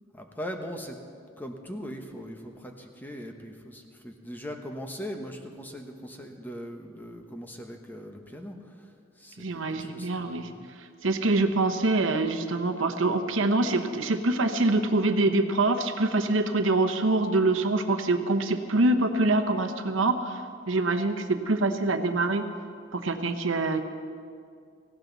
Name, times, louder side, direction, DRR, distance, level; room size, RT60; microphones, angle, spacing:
voice 1, 0.1-1.0 1.4-10.7, equal, 10° left, 3 dB, 1.1 m, -40 dB
voice 2, 9.4-10.5 11.0-20.4 20.7-22.4 22.9-23.8, right 2 dB, 80° right, 7 dB, 1.0 m, -25 dB
18.0 x 16.5 x 4.0 m, 2.2 s
head